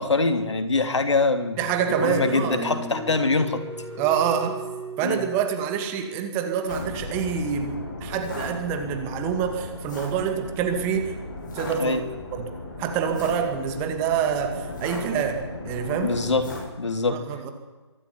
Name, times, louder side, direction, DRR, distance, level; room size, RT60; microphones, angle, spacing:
voice 1, 0.0-1.6 1.9-3.6 5.0-5.2 11.8-12.1 16.0-17.3, left 3 dB, 75° left, 8 dB, 3.0 m, -24 dB
voice 2, 1.6-2.7 4.0-4.5 5.0-11.1 11.5-12.0 12.3-12.5 12.8-16.2 17.1-17.5, right 8 dB, 15° right, 6 dB, 2.3 m, -26 dB
sound 1, 1.7-6.3, right 1 dB, 10° left, 3.9 m, -37 dB
sound 2, 6.7-16.6, left 2 dB, 40° left, 7.4 m, -36 dB
24.0 x 12.5 x 9.8 m, 1.3 s
figure-of-eight pair, 155°, 15 cm